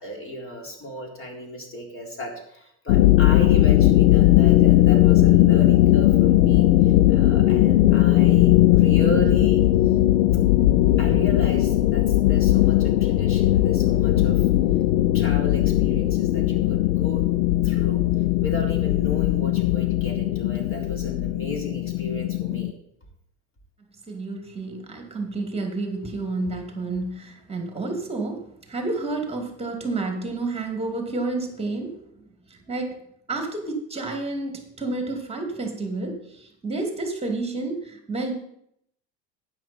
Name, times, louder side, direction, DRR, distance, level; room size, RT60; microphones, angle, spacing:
voice 1, 0.0-9.6 11.0-14.5 15.1-17.2 17.6-18.0 18.4-22.7, equal, 25° left, 1 dB, 3.9 m, -34 dB
sound 1, 2.9-22.7, left 14 dB, 65° left, 0.7 m, -18 dB
voice 2, 24.1-32.0 32.5-33.0 33.3-38.3, right 3 dB, 10° right, 4 dB, 2.7 m, -30 dB
12.0 x 9.8 x 4.4 m, 0.72 s
figure-of-eight pair, 75°, 47 cm